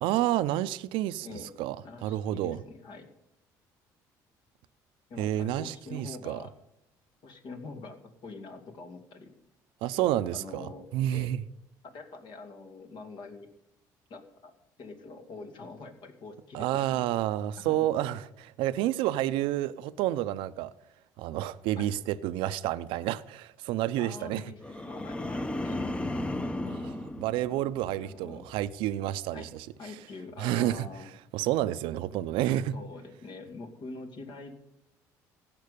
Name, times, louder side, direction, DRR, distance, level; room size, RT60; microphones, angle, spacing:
voice 1, 0.0-1.3 1.6-1.8 2.0-2.6 5.2-6.4 9.8-11.4 16.5-20.7 21.2-24.4 26.6-29.7 30.4-30.9 31.3-32.8, right 13 dB, 80° right, 0.6 m, -29 dB
voice 2, 1.8-3.1 5.1-6.5 7.2-9.3 10.0-11.3 11.8-13.5 14.1-14.5 14.8-17.0 17.6-17.8 21.8-21.9 24.0-26.0 28.0-28.5 29.3-29.5 29.8-31.1 32.7-34.5, left 3 dB, 60° left, 2.6 m, -44 dB
sound 1, 24.6-28.0 28.4-28.8, left 1 dB, 15° left, 0.8 m, -35 dB
16.0 x 6.1 x 8.4 m
supercardioid pair, 80°, 9 cm